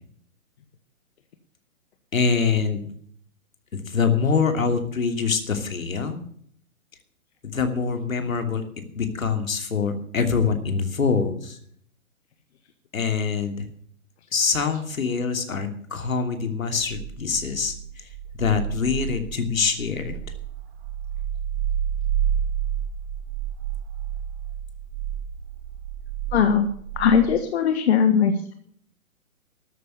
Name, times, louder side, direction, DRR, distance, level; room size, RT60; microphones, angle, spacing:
voice 1, 2.1-2.9 3.7-6.2 7.4-8.6 8.9-11.6 12.9-13.7 14.3-18.1 18.4-20.2, left 5 dB, 70° left, 6 dB, 3.0 m, -24 dB
sound 1, 16.8-27.3, right 9 dB, 45° right, 1.9 m, -30 dB
voice 2, 26.3-26.7 27.0-28.5, left 7 dB, 50° left, 7 dB, 1.6 m, -19 dB
13.5 x 9.5 x 7.0 m, 0.62 s
figure-of-eight pair, 130°, 42 cm